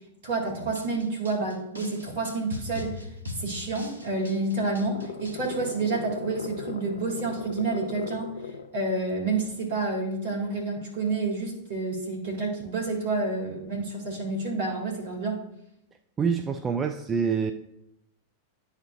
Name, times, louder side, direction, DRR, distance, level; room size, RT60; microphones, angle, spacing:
voice 1, 0.2-3.0 3.4-8.3 8.7-15.4, right 3 dB, 60° right, -1 dB, 2.0 m, -29 dB
sound 1, 0.8-5.6, left 2 dB, 85° right, 0.9 m, -39 dB
sound 2, 3.9-8.8, left 5 dB, 70° left, 0.5 m, -38 dB
voice 2, 16.2-17.5, right 6 dB, 20° right, 7 dB, 0.4 m, -26 dB
10.5 x 4.4 x 2.5 m, 0.79 s
figure-of-eight pair, 90°, 0 cm